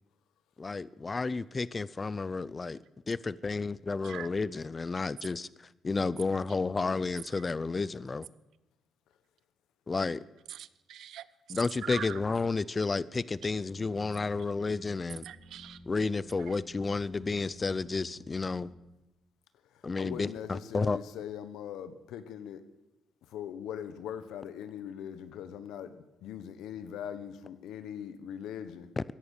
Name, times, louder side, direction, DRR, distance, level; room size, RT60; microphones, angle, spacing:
voice 1, 0.6-2.8 3.1-8.3 9.9-10.2 11.5-15.2 15.9-18.7 19.8-21.0 29.0-29.1, left 4 dB, 30° left, 0.5 m, -31 dB
voice 2, 10.5-12.2 15.2-15.8 16.4-16.6, right 11 dB, 75° right, 0.6 m, -43 dB
sound 1, 13.3-18.8, left 1 dB, 10° right, 3.3 m, -53 dB
voice 3, 19.7-22.6 23.3-28.9, left 9 dB, 85° left, 1.2 m, -41 dB
16.0 x 11.0 x 6.6 m
cardioid pair, 90°, 0 cm